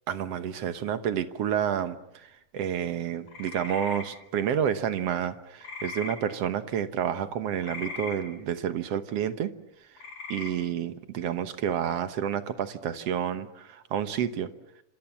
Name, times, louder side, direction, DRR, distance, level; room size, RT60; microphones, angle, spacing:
voice 1, 0.1-9.5 10.3-14.5, right 9 dB, 60° right, 11 dB, 1.8 m, -29 dB
sound 1, 3.3-4.0 5.6-6.2 7.6-8.2 10.0-10.5, left 4 dB, 60° left, 7.3 m, -38 dB
27.5 x 26.5 x 7.3 m, 0.81 s
omnidirectional pair, 3.8 m